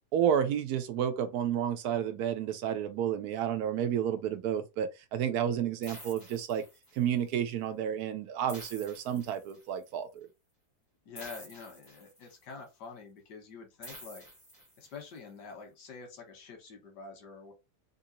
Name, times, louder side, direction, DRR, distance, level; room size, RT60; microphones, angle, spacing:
voice 1, 0.1-6.6 6.9-10.3, right 9 dB, 75° right, 1.1 m, -31 dB
sound 1, 5.8-7.2 8.5-9.8 11.1-12.5 13.8-15.2, equal, 15° left, 0.9 m, -50 dB
voice 2, 11.0-14.2 14.8-17.5, left 5 dB, 90° left, 1.6 m, -47 dB
3.6 x 2.7 x 2.8 m
omnidirectional pair, 1.7 m